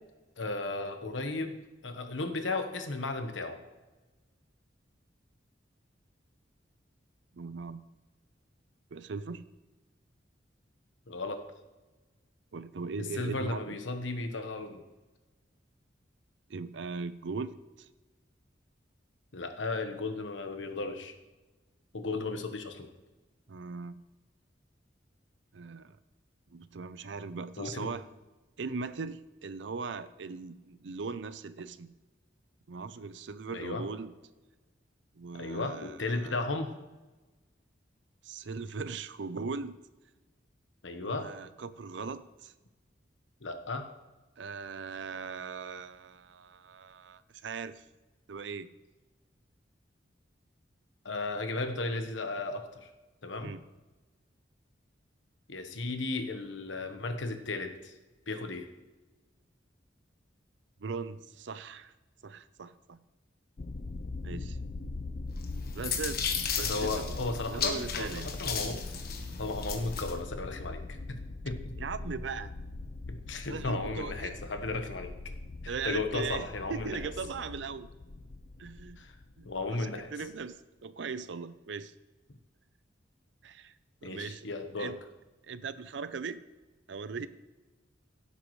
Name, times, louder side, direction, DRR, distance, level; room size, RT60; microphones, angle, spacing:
voice 1, 0.4-1.6 1.8-3.6 11.1-11.4 13.2-14.8 19.3-21.1 21.9-22.9 27.6-27.9 33.5-33.8 35.3-36.7 40.8-41.3 43.4-43.9 51.0-52.9 53.2-53.6 55.5-57.9 58.3-58.7 66.6-69.0 69.4-71.2 71.4-71.7 73.1-75.1 75.6-77.0 79.0-79.2 79.4-80.1 84.0-84.9, left 3 dB, 85° left, 6 dB, 1.1 m, -35 dB
voice 2, 7.3-7.8 8.9-9.4 12.5-13.8 16.5-17.9 23.5-24.0 25.5-26.0 26.5-28.1 28.6-31.9 32.7-34.1 35.2-36.3 38.2-39.8 41.0-42.5 44.4-47.8 48.3-48.7 53.4-53.6 60.8-61.9 62.2-63.0 64.2-64.6 65.7-67.1 67.5-68.3 71.8-72.5 73.5-74.3 75.7-77.9 78.6-79.0 79.4-81.9 83.4-83.7 84.0-84.5 84.8-85.0 85.4-86.4 86.9-87.3, right 4 dB, 70° right, 14 dB, 0.5 m, -39 dB
sound 1, 63.6-80.0, left 2 dB, 40° left, 0.5 m, -41 dB
sound 2, 65.4-70.2, left 6 dB, 55° left, 1.3 m, -35 dB
16.5 x 8.3 x 3.2 m, 1.2 s
head